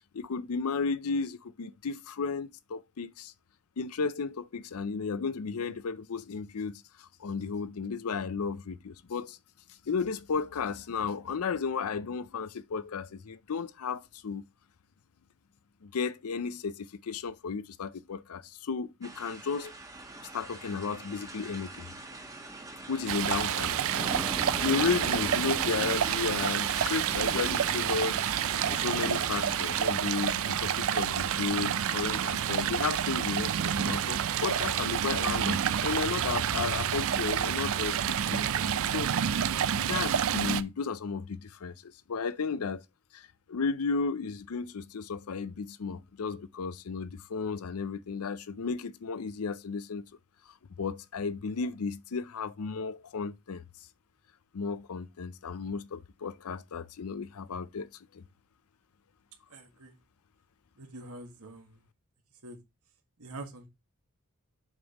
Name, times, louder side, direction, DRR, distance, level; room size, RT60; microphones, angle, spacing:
voice 1, 0.1-3.3 3.8-9.4 9.9-14.4 15.8-19.7 20.3-21.9 22.9-23.8 24.6-28.2 28.7-38.5 38.9-39.2 39.9-42.8 43.1-50.0 50.8-53.6 54.5-58.2, left 5 dB, 75° left, 0.5 m, -34 dB
sound 1, 19.0-29.9, right 1 dB, 15° right, 1.2 m, -41 dB
Stream, 23.1-40.6, right 9 dB, 65° right, 0.4 m, -29 dB
voice 2, 23.8-24.1 59.5-59.9 60.8-61.8 62.4-62.6 63.2-63.7, right 2 dB, 90° right, 1.7 m, -44 dB
7.4 x 5.3 x 2.9 m
head